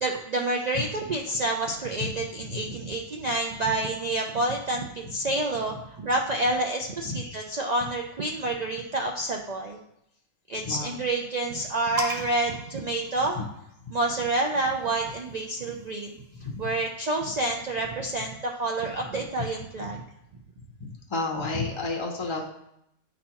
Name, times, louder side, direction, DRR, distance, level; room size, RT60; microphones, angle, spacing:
voice 1, 0.0-9.8 10.5-13.4 13.9-16.1 16.6-20.0, right 2 dB, 70° right, 1 dB, 0.4 m, -28 dB
voice 2, 10.6-11.0 13.3-13.4 16.4-16.7 21.1-22.5, left 3 dB, 30° left, 1 dB, 0.5 m, -30 dB
sound 1, 12.0-13.8 14.9-16.5, right 1 dB, 40° right, 0.7 m, -38 dB
9.3 x 4.1 x 2.9 m, 0.79 s
omnidirectional pair, 1.3 m